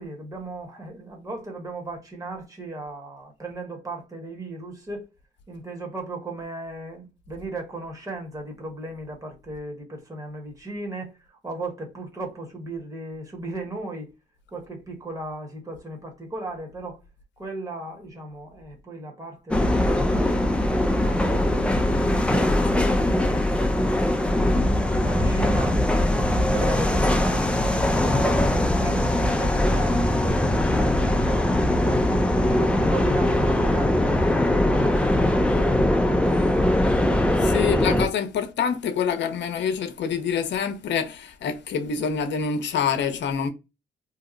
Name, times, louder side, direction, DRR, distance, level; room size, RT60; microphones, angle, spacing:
voice 1, 0.0-5.1 5.5-14.1 14.5-17.0 17.4-22.6 23.1-25.8 26.2-35.2, right 2 dB, 15° right, 1.2 m, -37 dB
sound 1, 19.5-38.1, left 1 dB, 5° left, 0.4 m, -21 dB
voice 2, 37.4-43.5, left 7 dB, 65° left, 0.7 m, -26 dB
2.8 x 2.0 x 3.7 m
cardioid pair, 90°, 20 cm